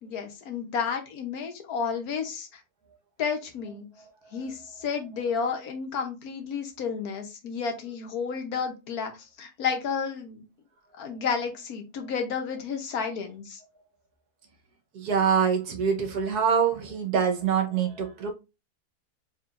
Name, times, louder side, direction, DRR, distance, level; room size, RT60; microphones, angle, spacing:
voice 1, 0.0-2.6 3.2-3.9 4.3-10.4 11.0-13.6, left 6 dB, 70° left, 1.4 m, -31 dB
voice 2, 14.9-18.3, right 7 dB, 75° right, 1.5 m, -25 dB
4.7 x 3.7 x 2.5 m
omnidirectional pair, 1.7 m